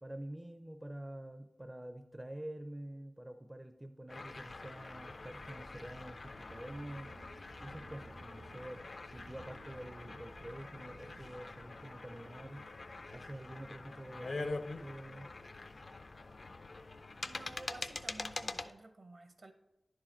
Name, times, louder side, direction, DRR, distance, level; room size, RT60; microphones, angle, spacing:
voice 1, 0.0-7.1 7.6-12.6 13.1-15.3, right 1 dB, 15° right, 7 dB, 0.4 m, -47 dB
sound 1, 4.1-18.7, left 3 dB, 55° left, 0.4 m, -45 dB
sound 2, 4.4-16.3, left 2 dB, 70° left, 0.7 m, -66 dB
sound 3, 6.5-11.8, right 2 dB, 90° right, 0.6 m, -58 dB
voice 2, 17.3-19.5, right 2 dB, 55° right, 8 dB, 0.8 m, -52 dB
10.5 x 4.8 x 4.3 m, 0.93 s
wide cardioid pair, 90°, 0 cm